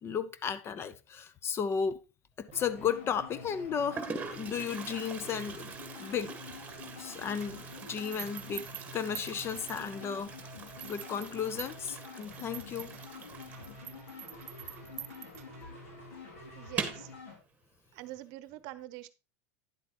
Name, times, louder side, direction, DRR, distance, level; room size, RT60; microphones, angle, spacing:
voice 1, 0.0-2.0 2.4-5.7 6.0-6.3 7.0-8.7 8.9-10.3 10.8-12.9, left 7 dB, 35° left, 0.8 m, -34 dB
Toilet flush, 2.4-2.9 3.6-3.7 3.9-15.2 15.5-15.6 15.9-16.0 16.6-17.1, right 5 dB, 20° right, 1.6 m, -43 dB
sound 1, 2.5-17.4, left 3 dB, 80° left, 4.5 m, -48 dB
sound 2, 7.4-10.2 10.7-15.8, right 12 dB, 90° right, 0.6 m, -47 dB
voice 2, 16.6-17.1 17.9-19.1, right 16 dB, 60° right, 0.8 m, -44 dB
10.0 x 8.1 x 3.0 m
hypercardioid pair, 110°, 8 cm